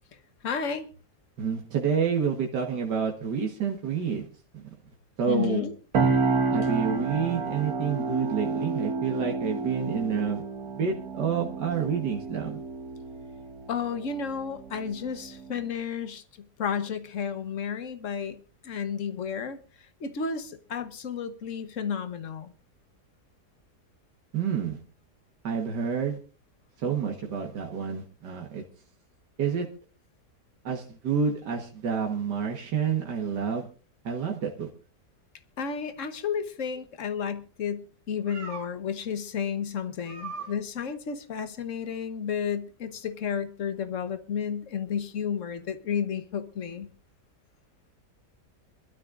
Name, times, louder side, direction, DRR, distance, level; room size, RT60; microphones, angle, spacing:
voice 1, 0.4-0.9 5.3-5.7 13.7-16.2 16.6-18.4 18.6-19.6 20.0-22.5 35.6-46.9, left 7 dB, 50° left, 1.4 m, -32 dB
voice 2, 1.4-4.3 4.5-4.6 5.2-5.7 6.5-10.4 10.7-12.6 24.3-24.8 25.4-26.2 26.8-28.6 29.4-29.7 30.7-33.7 34.1-34.7 38.3-38.6 40.1-40.5, right 7 dB, 85° right, 2.0 m, -29 dB
sound 1, 5.9-15.7, right 4 dB, 65° right, 1.8 m, -30 dB
26.5 x 12.5 x 2.5 m
omnidirectional pair, 1.8 m